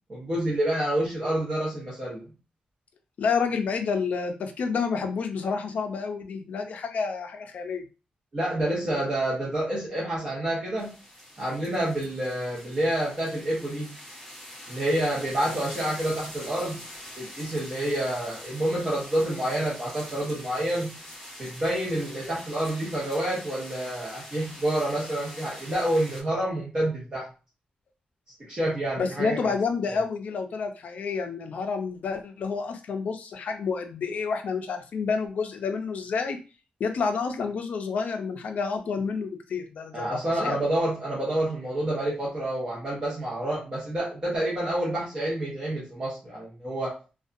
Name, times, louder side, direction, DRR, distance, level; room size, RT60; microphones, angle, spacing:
voice 1, 0.1-2.2 8.3-10.9 11.4-13.9 14.7-16.8 17.2-20.9 21.4-27.3 28.5-29.4 29.9-30.0 39.9-46.9, right 1 dB, 30° right, -6 dB, 0.8 m, -28 dB
voice 2, 3.2-7.8 29.0-36.4 36.8-40.6, left 5 dB, 60° left, 5 dB, 0.4 m, -29 dB
sound 1, 10.8-26.2, equal, 5° left, 1.1 m, -44 dB
2.6 x 2.3 x 2.4 m, 0.32 s
wide cardioid pair, 175°, 3 cm